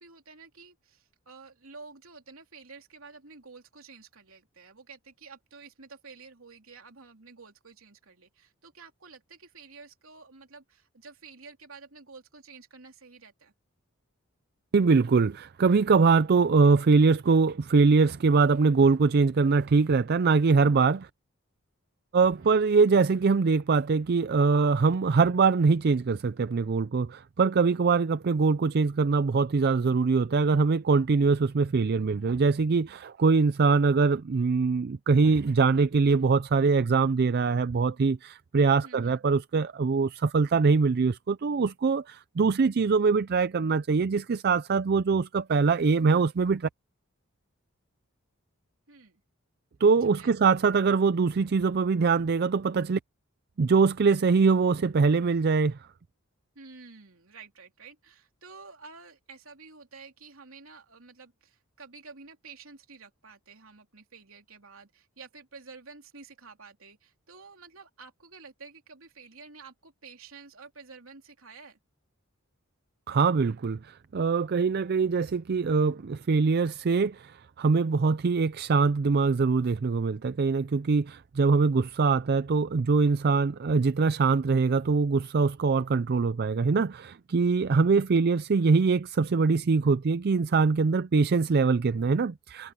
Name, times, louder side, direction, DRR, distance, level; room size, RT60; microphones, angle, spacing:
voice 1, 0.0-13.5 22.4-22.6 38.8-39.3 48.9-49.2 50.0-50.4 56.6-71.8, right 4 dB, 75° right, 3.4 m, -50 dB
voice 2, 14.7-21.1 22.1-46.7 49.8-53.0 53.6-55.8 73.1-92.7, right 4 dB, 50° right, 0.4 m, -23 dB
head